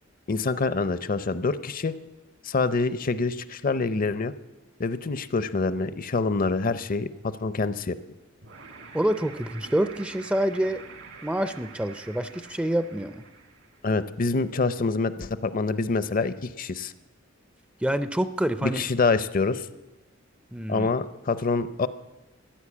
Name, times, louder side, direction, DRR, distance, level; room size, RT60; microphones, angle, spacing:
voice 1, 0.3-2.0 2.4-4.3 4.8-8.0 13.8-16.9 18.6-19.7 20.7-21.9, left 3 dB, 45° left, 14 dB, 0.6 m, -26 dB
sound 1, 8.4-13.9, right 4 dB, 70° right, 1.8 m, -46 dB
voice 2, 8.9-10.8 11.2-13.2 17.8-18.8 20.5-20.9, right 1 dB, 5° right, 11 dB, 0.4 m, -27 dB
14.5 x 10.5 x 8.5 m, 1.1 s
head